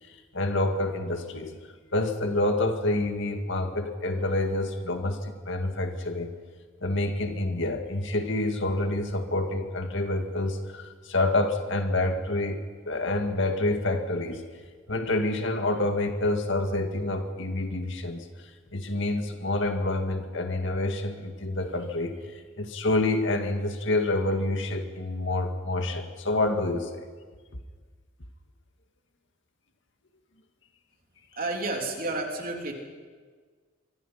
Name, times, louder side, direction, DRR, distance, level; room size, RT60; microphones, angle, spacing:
voice 1, 0.3-1.6 1.9-6.3 6.8-14.4 14.9-18.2 18.7-22.1 22.6-27.1, left 2 dB, 65° left, 5 dB, 2.0 m, -27 dB
voice 2, 31.3-32.7, right 2 dB, 45° right, 2 dB, 3.4 m, -30 dB
25.0 x 23.5 x 5.9 m, 1.5 s
head